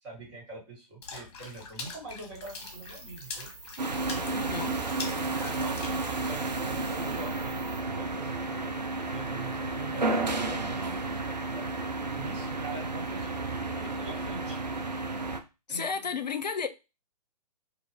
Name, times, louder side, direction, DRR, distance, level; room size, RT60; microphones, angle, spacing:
voice 1, 0.0-3.5 4.1-8.8 9.1-11.7 12.1-14.6 15.7-16.0, right 3 dB, 45° right, 1.7 m, -44 dB
Water / Splash splatter, 1.0-6.8, left 4 dB, 40° left, 0.8 m, -43 dB
sound 1, 2.4-7.8, right 4 dB, 10° right, 0.3 m, -49 dB
sound 2, 3.8-15.4, right 3 dB, 90° right, 0.5 m, -32 dB
voice 2, 4.3-4.8 15.7-16.7, left 6 dB, 80° left, 0.4 m, -32 dB
2.6 x 2.5 x 3.3 m
figure-of-eight pair, 115°, 21 cm